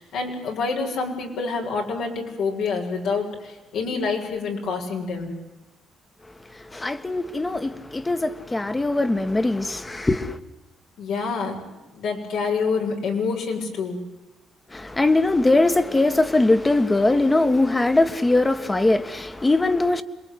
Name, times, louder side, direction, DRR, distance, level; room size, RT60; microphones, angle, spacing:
voice 1, 0.0-5.3 11.0-14.0, left 4 dB, 80° left, 6.6 m, -27 dB
voice 2, 6.5-10.4 14.7-20.0, left 2 dB, 20° left, 1.7 m, -21 dB
27.0 x 22.0 x 9.6 m
cardioid pair, 90°, 0 cm